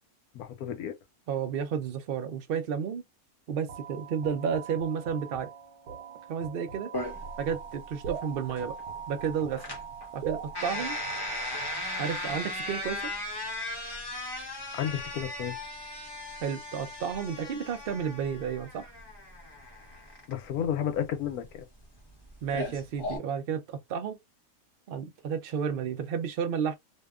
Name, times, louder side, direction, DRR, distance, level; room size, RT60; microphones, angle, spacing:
voice 1, 0.3-1.0 14.7-15.6 20.3-21.7, left 9 dB, 90° left, 1.1 m, -32 dB
voice 2, 1.3-3.0 3.5-5.5 6.3-6.9 7.4-8.8 9.1-9.7 10.1-11.0 12.0-13.1 16.4-18.9 22.4-24.2 24.9-26.8, right 7 dB, 65° right, 0.5 m, -32 dB
sound 1, 3.7-12.4, right 7 dB, 85° right, 1.1 m, -41 dB
sound 2, 6.9-23.2, left 1 dB, 25° left, 0.5 m, -38 dB
2.7 x 2.2 x 2.3 m
omnidirectional pair, 1.5 m